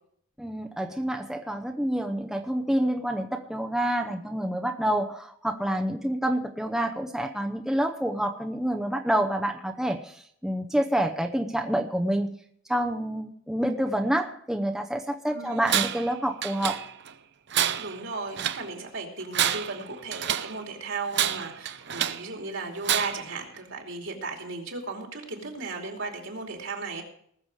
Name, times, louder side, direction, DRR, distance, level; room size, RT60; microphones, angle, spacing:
voice 1, 0.4-12.3 12.7-16.8, right 1 dB, ahead, 3 dB, 0.7 m, -28 dB
voice 2, 15.3-15.7 17.8-27.0, right 3 dB, 75° right, 2 dB, 2.8 m, -36 dB
Tools, 15.7-16.1 16.4-17.1 17.5-18.7 19.2-20.6 21.1-22.3 22.8-23.3, right 10 dB, 60° right, 0.7 m, -28 dB
19.5 x 7.0 x 4.8 m, 0.65 s
head